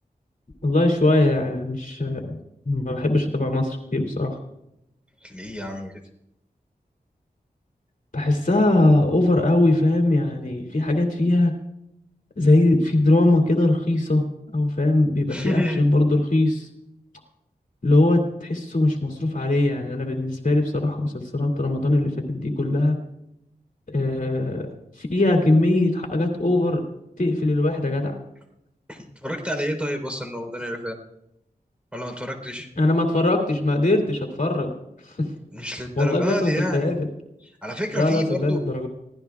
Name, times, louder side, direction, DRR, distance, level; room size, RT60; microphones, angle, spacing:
voice 1, 0.6-2.4 2.6-4.4 8.1-11.5 12.4-16.7 17.8-23.0 23.9-24.7 25.0-26.8 27.2-28.1 32.8-34.7 35.1-35.3 36.0-37.1 37.9-38.9, left 2 dB, 55° left, 2 dB, 2.6 m, -21 dB
voice 2, 5.2-6.0 15.3-15.8 28.9-31.0 31.9-32.7 35.5-36.9 37.4-38.6, equal, 5° right, 3 dB, 3.8 m, -29 dB
24.0 x 16.5 x 2.4 m, 0.83 s
wide cardioid pair, 55°, 16 cm